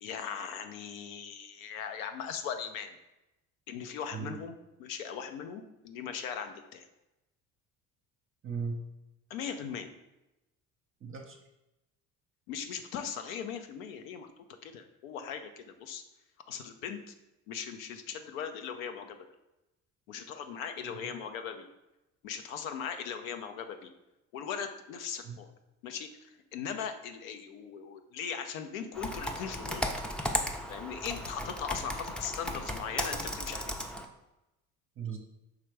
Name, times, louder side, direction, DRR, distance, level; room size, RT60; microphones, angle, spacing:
voice 1, 0.0-3.0 3.7-6.9 9.3-10.0 12.5-14.3 14.6-16.0 16.5-17.1 17.5-19.3 20.1-21.7 22.2-23.9 24.3-25.5 25.8-29.8 30.7-33.7, left 7 dB, 80° left, 7 dB, 0.5 m, -39 dB
voice 2, 8.4-8.8 11.0-11.4 20.8-21.2 25.2-25.4 35.0-35.2, right 5 dB, 30° right, 3 dB, 0.6 m, -38 dB
Computer keyboard, 28.9-34.1, equal, 5° left, 0.3 m, -35 dB
4.8 x 3.3 x 3.1 m, 0.94 s
hypercardioid pair, 55°, 41 cm